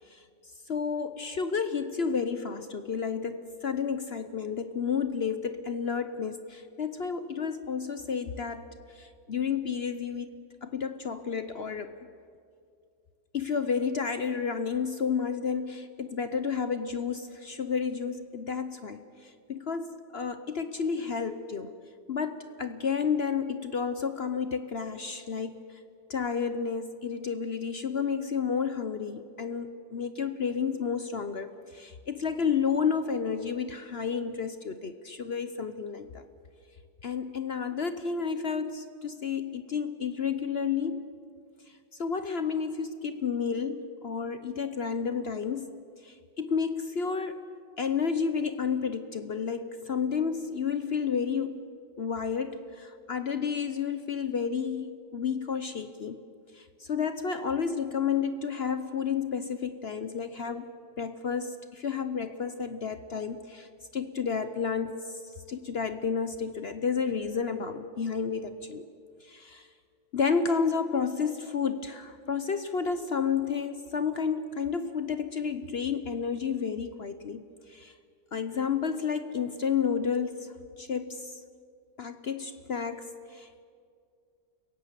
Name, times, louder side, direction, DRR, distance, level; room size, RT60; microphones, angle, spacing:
voice 1, 0.7-10.3 10.6-11.9 13.3-21.7 22.1-25.6 26.1-36.2 37.0-41.1 42.0-45.7 46.0-47.4 47.8-51.7 52.0-56.2 56.5-60.7 61.0-65.2 65.5-68.9 69.2-69.7 70.1-77.4 77.7-77.9 78.3-81.4 82.0-83.6, left 6 dB, 50° left, 10 dB, 0.8 m, -31 dB
29.5 x 17.0 x 7.5 m, 2.3 s
omnidirectional pair, 1.9 m